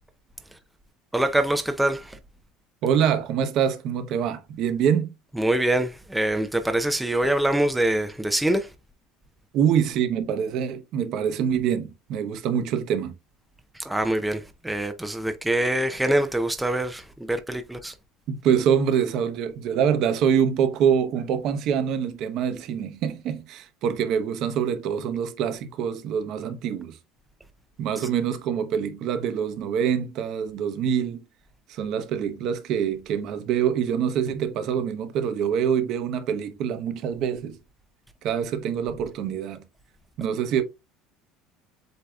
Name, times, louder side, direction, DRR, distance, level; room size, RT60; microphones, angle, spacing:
voice 1, 1.1-2.2 5.4-8.7 13.7-17.9, right 1 dB, 5° right, 0.4 m, -24 dB
voice 2, 2.8-5.1 9.5-13.1 18.3-27.0 27.8-31.2 31.7-37.6 38.2-39.6 40.2-40.6, right 8 dB, 50° right, 0.8 m, -25 dB
7.9 x 2.7 x 2.3 m
cardioid pair, 150°, 0 cm